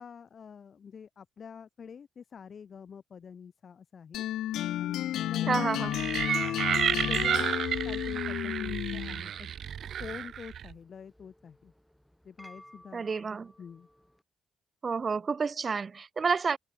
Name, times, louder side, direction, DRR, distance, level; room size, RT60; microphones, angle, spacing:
voice 1, 0.0-4.2 4.8-6.4 7.0-7.5 7.8-9.5 10.0-11.7 12.2-13.2 13.6-13.9, left 7 dB, 50° left, 7.5 m, -46 dB
sound 1, 4.1-9.3, left 13 dB, 80° left, 2.1 m, -32 dB
voice 2, 5.5-5.9 12.9-13.5 14.8-16.6, right 5 dB, 35° right, 0.6 m, -29 dB
sound 2, 5.9-10.7, right 9 dB, 60° right, 1.2 m, -31 dB
sound 3, 6.3-14.2, equal, 5° left, 5.5 m, -51 dB
cardioid pair, 90°, 0 cm